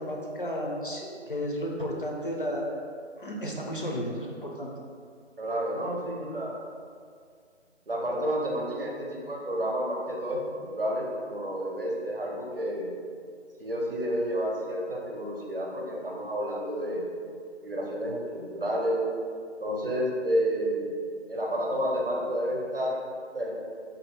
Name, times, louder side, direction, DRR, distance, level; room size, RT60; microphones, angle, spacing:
voice 1, 0.0-2.8 3.2-4.7, equal, 50° left, -1 dB, 0.5 m, -33 dB
voice 2, 5.4-6.6 7.9-12.9 13.6-17.1 17.6-19.0 19.6-21.0 21.3-23.0 23.3-23.5, equal, 50° right, -2 dB, 0.6 m, -30 dB
2.6 x 2.5 x 4.2 m, 2.1 s
figure-of-eight pair, 155°, 36 cm